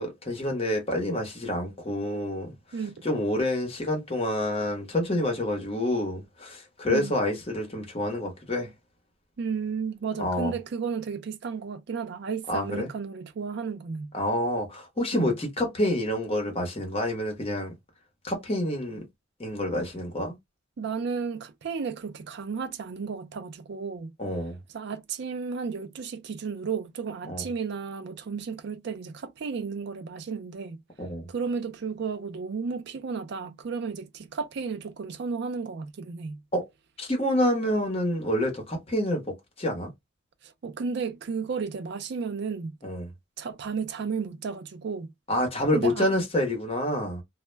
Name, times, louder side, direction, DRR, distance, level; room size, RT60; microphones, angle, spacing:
voice 1, 0.0-2.5 3.0-8.7 10.2-10.5 12.5-12.9 14.1-17.7 18.2-19.0 19.4-20.3 24.2-24.6 27.3-27.5 31.0-31.3 36.5-36.6 37.0-39.9 42.8-43.1 45.3-47.2, left 1 dB, 30° left, 0.8 m, -28 dB
voice 2, 2.7-3.1 6.9-7.1 9.4-14.1 15.1-15.3 20.8-24.1 24.7-30.8 31.3-36.4 40.4-42.7 43.4-45.1 45.7-46.1, right 5 dB, 55° right, 0.4 m, -33 dB
2.1 x 2.1 x 3.2 m
head